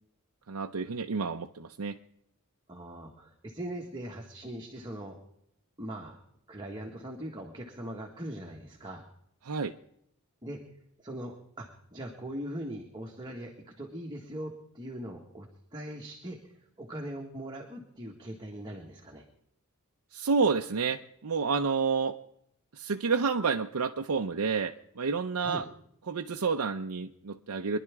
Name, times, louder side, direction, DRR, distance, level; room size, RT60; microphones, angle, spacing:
voice 1, 0.5-2.0 9.4-9.7 20.1-22.2 22.7-25.6 26.1-27.8, right 5 dB, 80° right, 3 dB, 0.6 m, -29 dB
voice 2, 2.7-5.2 5.8-6.2 6.5-9.0 10.4-10.6 11.0-15.5 15.7-19.3 25.4-25.6, right 1 dB, 20° right, -1 dB, 1.6 m, -41 dB
24.0 x 11.0 x 3.6 m, 0.72 s
head